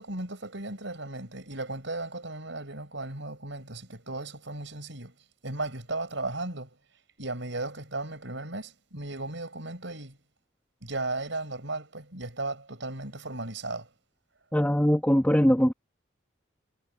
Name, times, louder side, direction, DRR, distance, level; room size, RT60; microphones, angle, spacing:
voice 1, 0.0-5.2 5.4-6.8 7.2-10.2 10.8-13.9, right 2 dB, 70° right, 7.3 m, -36 dB
voice 2, 14.5-15.7, equal, 10° left, 1.7 m, -21 dB
head